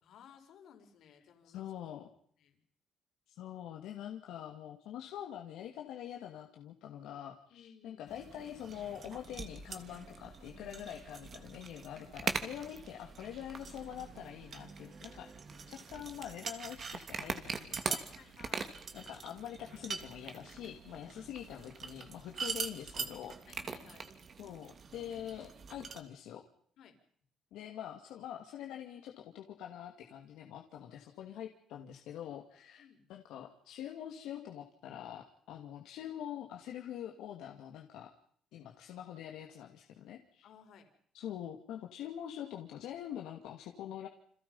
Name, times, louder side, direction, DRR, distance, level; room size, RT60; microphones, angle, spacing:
voice 1, 0.0-1.7 2.4-2.6 7.5-8.1 15.1-15.7 17.9-18.7 20.5-21.4 23.5-24.3 26.8-27.0 32.8-33.1 40.4-40.9, left 8 dB, 65° left, 6 dB, 5.2 m, -59 dB
voice 2, 1.4-2.1 3.3-15.3 15.7-18.3 18.9-23.4 24.4-26.4 27.5-32.8 33.1-38.1 38.5-40.5 41.1-44.1, left 10 dB, 85° left, 2 dB, 2.4 m, -45 dB
sound 1, 8.1-26.0, right 5 dB, 40° right, 2.9 m, -43 dB
29.5 x 27.0 x 5.6 m, 0.62 s
cardioid pair, 130°, 0 cm